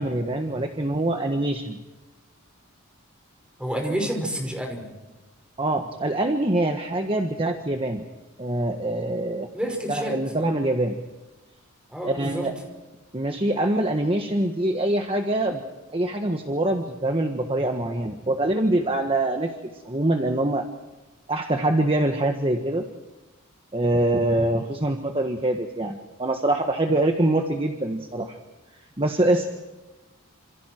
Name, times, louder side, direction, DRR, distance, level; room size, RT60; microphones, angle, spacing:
voice 1, 0.0-1.8 3.8-4.0 5.6-8.0 8.4-9.5 9.9-10.9 12.0-12.5 13.1-15.6 15.9-20.7 21.3-22.9 23.7-28.4 29.0-29.5, right 1 dB, 25° right, 4 dB, 1.5 m, -24 dB
voice 2, 3.6-4.9 9.5-10.2 11.9-12.5, equal, 5° right, 2 dB, 5.5 m, -29 dB
28.0 x 27.5 x 4.6 m, 1.1 s
head